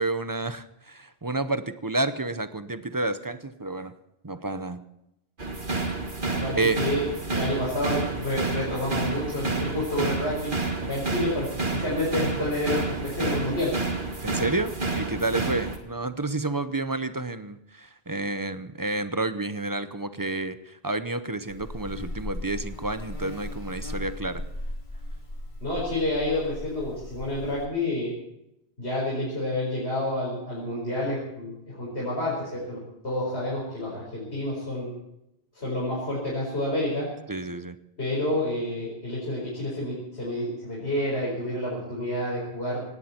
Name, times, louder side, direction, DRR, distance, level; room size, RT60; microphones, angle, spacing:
voice 1, 0.0-4.0 4.2-4.8 5.7-5.9 6.5-6.8 14.2-24.4 37.3-37.8, right 2 dB, 20° right, 11 dB, 0.7 m, -30 dB
sound 1, 5.4-15.8, right 3 dB, 50° right, 2.2 m, -30 dB
voice 2, 6.3-7.0 7.3-10.6 10.8-13.8 25.6-28.1 28.8-34.9 35.5-37.1 38.0-42.8, left 1 dB, 90° left, -6 dB, 5.2 m, -29 dB
Buzz, 21.5-27.7, left 1 dB, 50° left, 2.4 m, -37 dB
18.0 x 17.5 x 4.4 m, 0.85 s
omnidirectional pair, 1.1 m